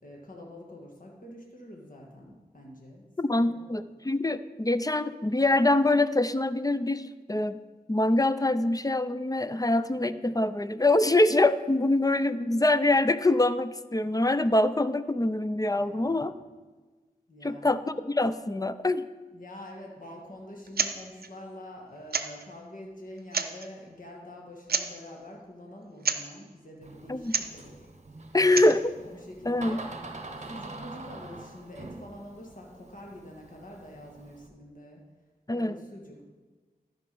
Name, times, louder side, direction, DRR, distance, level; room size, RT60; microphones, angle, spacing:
voice 1, 0.0-3.1 3.3-3.9 9.9-10.1 15.7-16.5 17.3-17.7 19.3-27.9 28.3-28.4 29.0-30.0 30.4-35.0 35.5-36.2, left 1 dB, 55° left, -1 dB, 1.9 m, -46 dB
voice 2, 3.2-7.6 7.9-16.3 17.4-19.0 27.1-27.3 28.3-28.9 29.5-29.8 35.5-35.8, left 2 dB, 20° left, 13 dB, 0.5 m, -24 dB
sound 1, 20.7-21.0 21.2-21.3 22.1-22.5 23.2-23.7 24.7-25.0 26.0-26.3 27.2-27.6 28.4-28.8, right 5 dB, 70° right, 0.6 m, -29 dB
Door, 26.8-34.5, right 2 dB, 45° right, 0.9 m, -45 dB
13.0 x 5.2 x 5.4 m, 1.3 s
cardioid pair, 40°, 16 cm